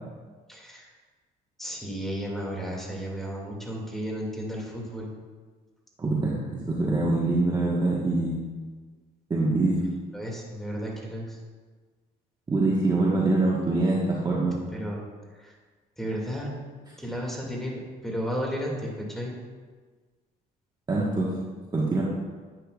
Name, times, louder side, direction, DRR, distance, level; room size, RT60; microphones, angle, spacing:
voice 1, 0.5-0.9 1.6-5.1 10.1-11.4 14.7-15.0 15.3-15.5 16.0-16.5 17.0-19.4, equal, ahead, -2 dB, 2.4 m, -33 dB
voice 2, 6.0-6.4 6.7-8.4 9.3-9.8 12.5-14.6 20.9-21.4 21.7-22.0, right 2 dB, 25° right, -5 dB, 1.4 m, -24 dB
10.5 x 8.9 x 2.5 m, 1.4 s
cardioid pair, 110°, 17 cm